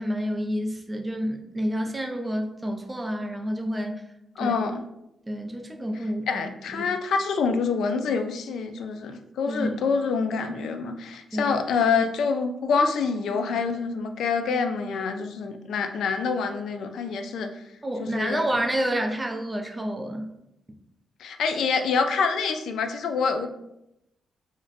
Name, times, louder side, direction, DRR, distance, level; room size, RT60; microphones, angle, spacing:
voice 1, 0.0-4.0 4.4-4.6 5.3-6.9 9.5-9.9 11.3-11.6 17.8-20.3, equal, 15° right, 3 dB, 0.4 m, -29 dB
voice 2, 4.4-4.8 6.3-17.5 18.0-18.4 21.2-23.5, left 5 dB, 85° left, 7 dB, 0.3 m, -26 dB
2.5 x 2.1 x 3.9 m, 0.84 s
cardioid pair, 105°, 0 cm